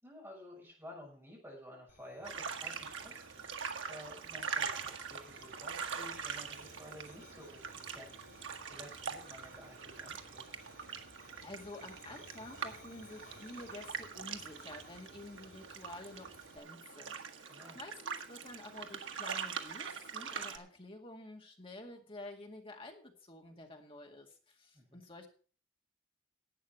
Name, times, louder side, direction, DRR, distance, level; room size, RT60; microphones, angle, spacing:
voice 1, 0.0-10.6 17.5-17.8 24.7-25.0, left 1 dB, 15° right, -2 dB, 6.3 m, -53 dB
sound 1, 1.9-16.6, left 2 dB, 80° left, 2.6 m, -60 dB
sound 2, 2.2-20.6, right 6 dB, 75° right, 1.3 m, -43 dB
voice 2, 11.0-25.3, left 2 dB, 30° left, 2 dB, 2.1 m, -50 dB
11.5 x 8.4 x 5.9 m, 0.40 s
head